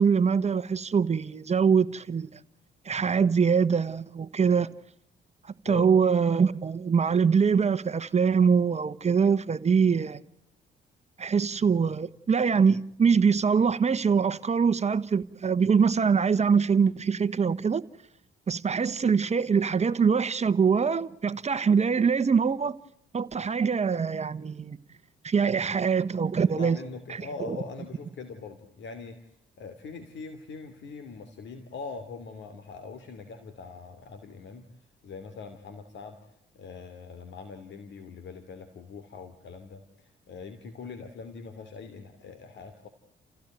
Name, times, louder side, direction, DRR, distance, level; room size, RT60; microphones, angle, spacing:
voice 1, 0.0-2.4 2.8-4.7 5.6-10.2 11.2-17.8 18.5-22.8 23.1-24.8 25.2-26.8 27.1-27.6, right 6 dB, 35° right, 1.2 m, -23 dB
voice 2, 26.4-29.3 29.6-34.7 35.0-42.9, left 4 dB, 65° left, 2.8 m, -42 dB
30.0 x 16.0 x 9.2 m
cardioid pair, 90°, 20 cm